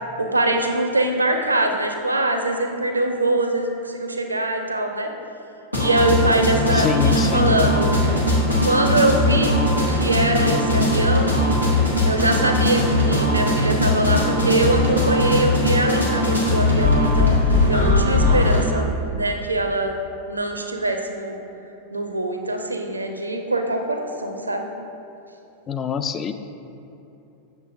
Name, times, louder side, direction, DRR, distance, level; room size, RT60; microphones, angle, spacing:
voice 1, 0.2-5.1 5.8-7.9 8.6-9.6 9.9-11.3 12.0-17.3 17.7-19.9 20.3-21.4 21.9-24.7, right 2 dB, 80° right, 5 dB, 0.5 m, -23 dB
sound 1, 5.7-18.7, left 1 dB, 90° left, 1.2 m, -19 dB
voice 2, 6.7-7.6 25.7-26.3, left 7 dB, 25° left, 9 dB, 0.3 m, -25 dB
7.3 x 6.7 x 2.6 m, 2.9 s
figure-of-eight pair, 90°, 0 cm